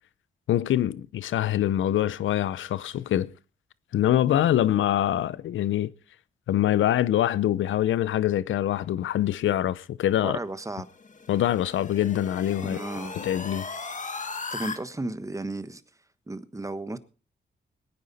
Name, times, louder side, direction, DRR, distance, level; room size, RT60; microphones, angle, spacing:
voice 1, 0.5-3.3 3.9-5.9 6.5-10.4 11.3-12.8 13.2-13.7, left 12 dB, 85° left, 0.7 m, -24 dB
voice 2, 10.2-10.9 12.6-13.1 14.5-15.8 16.3-17.0, right 2 dB, 15° right, 1.3 m, -34 dB
sound 1, 10.8-14.8, left 4 dB, 40° left, 1.8 m, -37 dB
21.5 x 9.6 x 4.1 m
cardioid pair, 75°, 20 cm